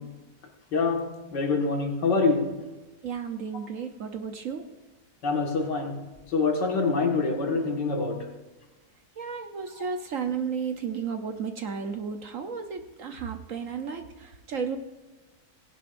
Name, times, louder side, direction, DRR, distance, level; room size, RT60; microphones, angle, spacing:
voice 1, 0.7-2.5 5.2-6.0 6.3-8.2 9.7-9.8, left 4 dB, 80° left, 1 dB, 2.5 m, -25 dB
voice 2, 3.0-4.7 9.2-14.8, right 6 dB, 55° right, 6 dB, 1.1 m, -33 dB
17.5 x 10.5 x 2.6 m, 1.2 s
omnidirectional pair, 1.9 m